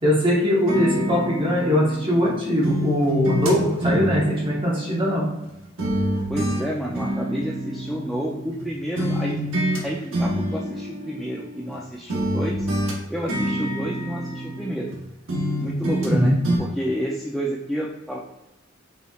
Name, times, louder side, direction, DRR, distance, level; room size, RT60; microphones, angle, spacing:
voice 1, 0.0-5.3 16.0-16.3, equal, 25° right, -5 dB, 1.1 m, -21 dB
sound 1, 0.7-2.3 2.6-5.5 5.8-8.7 9.0-9.8 10.1-11.8 12.1-15.0 15.3-16.2 16.4-16.6, right 1 dB, 80° right, 1.0 m, -27 dB
voice 2, 6.3-9.4 9.8-12.7 13.1-14.9 15.6-18.2, equal, ahead, -4 dB, 0.4 m, -30 dB
5.4 x 3.2 x 2.4 m, 0.98 s
head